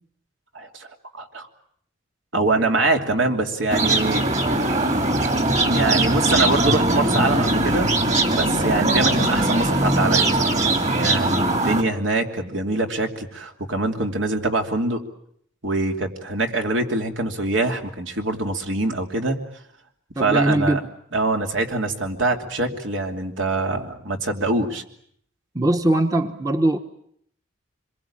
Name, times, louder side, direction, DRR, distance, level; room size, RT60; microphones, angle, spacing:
voice 1, 0.5-0.9 1.1-1.5 2.3-4.7 5.6-7.9 8.3-10.6 10.9-15.0 15.6-19.4 20.2-20.8 21.1-24.8, right 2 dB, 75° right, 4 dB, 3.0 m, -24 dB
sound 1, 3.7-11.8, right 2 dB, 35° right, 2.4 m, -20 dB
voice 2, 20.2-20.8 25.5-26.8, right 1 dB, 15° right, 7 dB, 1.0 m, -20 dB
26.5 x 22.5 x 8.8 m, 0.68 s
head